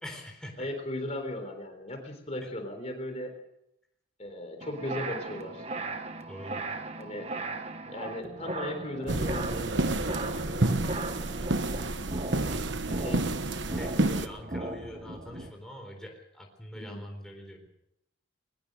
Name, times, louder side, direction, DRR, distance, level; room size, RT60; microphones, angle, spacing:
voice 1, 0.0-0.7 6.3-7.0 10.4-11.5 12.4-13.2 13.6-17.7, equal, 5° left, 1 dB, 4.0 m, -44 dB
voice 2, 0.6-3.4 4.2-5.7 7.0-7.3 7.8-10.2 13.0-13.2 16.7-17.0, left 1 dB, 30° left, 5 dB, 3.8 m, -37 dB
sound 1, 4.6-15.5, right 2 dB, 30° right, 1.4 m, -38 dB
sound 2, 9.1-14.3, right 2 dB, 60° right, 1.2 m, -29 dB
22.0 x 20.0 x 6.6 m, 0.79 s
head